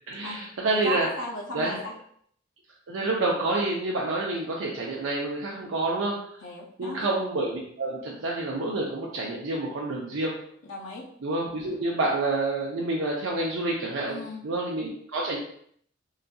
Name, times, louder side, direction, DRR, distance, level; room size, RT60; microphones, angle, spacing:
voice 1, 0.1-1.1 1.5-1.8 2.9-6.4 6.8-10.4 11.2-15.4, right 2 dB, 90° right, -3 dB, 0.5 m, -28 dB
voice 2, 0.7-1.9 6.4-7.1 10.7-11.0 14.1-14.4, left 1 dB, 90° left, -3 dB, 0.6 m, -36 dB
3.8 x 2.6 x 2.2 m, 0.64 s
head